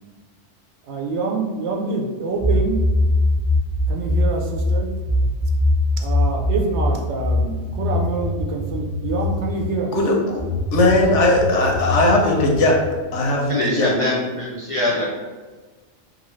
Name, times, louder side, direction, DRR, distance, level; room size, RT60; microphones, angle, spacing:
voice 1, 0.9-2.8 3.9-4.9 6.0-10.0, right 3 dB, 75° right, 1 dB, 0.9 m, -26 dB
sound 1, 2.4-9.7 10.4-12.9, left 1 dB, 30° right, 0.7 m, -22 dB
voice 2, 9.9-10.4 10.7-12.7 13.1-13.9, left 2 dB, 85° left, 0 dB, 1.0 m, -18 dB
voice 3, 13.5-15.1, left 1 dB, 55° left, -6 dB, 0.3 m, -23 dB
2.6 x 2.5 x 3.1 m, 1.3 s
omnidirectional pair, 1.2 m